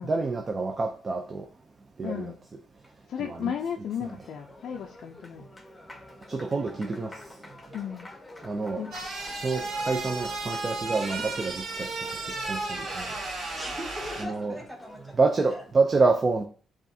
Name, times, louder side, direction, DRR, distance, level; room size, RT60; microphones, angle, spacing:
voice 1, 0.1-1.5 2.0-2.3 3.2-3.5 4.0-4.1 6.3-7.2 8.4-8.9 9.4-12.0 12.5-13.1 14.2-14.5 15.2-16.4, right 3 dB, 35° right, 0.4 m, -27 dB
voice 2, 2.0-2.4 3.1-5.4 7.7-8.0 8.8-8.9, left 8 dB, 70° left, 0.4 m, -34 dB
Applause, 3.6-15.5, left 2 dB, 15° left, 0.7 m, -49 dB
sound 1, 8.9-14.2, right 3 dB, 75° right, 1.4 m, -34 dB
voice 3, 13.5-15.2 15.5-15.6, equal, 5° right, 1.4 m, -41 dB
7.1 x 2.4 x 2.7 m
cardioid pair, 90°, 0 cm